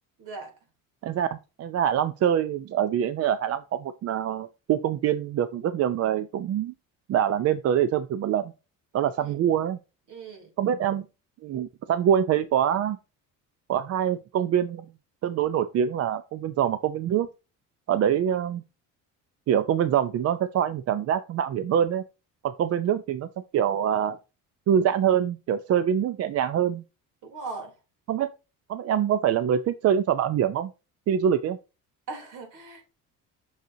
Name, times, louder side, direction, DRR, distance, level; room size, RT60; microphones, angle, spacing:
voice 1, 0.2-0.5 9.2-9.3 10.1-10.5 27.2-27.7 32.1-32.8, right 3 dB, 65° right, 3.2 m, -39 dB
voice 2, 1.0-6.7 7.1-8.4 8.9-9.8 10.6-11.0 11.4-13.0 13.7-14.9 15.2-17.3 17.9-18.6 19.5-22.0 22.4-23.3 23.5-24.2 24.7-26.8 28.1-28.3 28.7-30.7 31.1-31.6, right 9 dB, 50° right, 0.5 m, -24 dB
6.5 x 6.4 x 2.7 m
cardioid pair, 140°, 33 cm